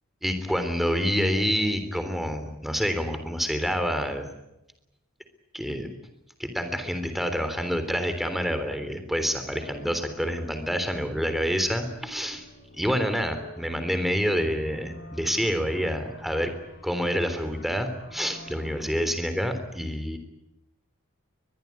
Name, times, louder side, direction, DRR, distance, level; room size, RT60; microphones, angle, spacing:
voice 1, 0.2-4.3 5.5-5.9 6.4-12.5 12.7-16.5 16.8-20.2, equal, ahead, 8 dB, 3.5 m, -27 dB
sound 1, 9.6-18.9, left 1 dB, 60° left, 4.4 m, -47 dB
23.0 x 21.5 x 9.7 m, 0.93 s
head